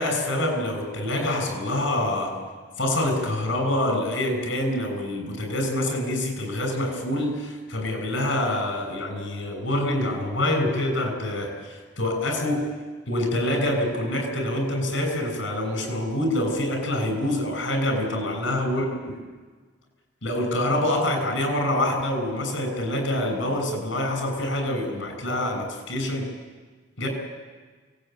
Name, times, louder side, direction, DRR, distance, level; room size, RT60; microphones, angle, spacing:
voice 1, 0.0-2.4 2.8-12.7 13.1-19.2 20.2-26.3 27.0-27.1, left 1 dB, 80° left, 5 dB, 7.0 m, -26 dB
28.5 x 18.5 x 9.3 m, 1.4 s
head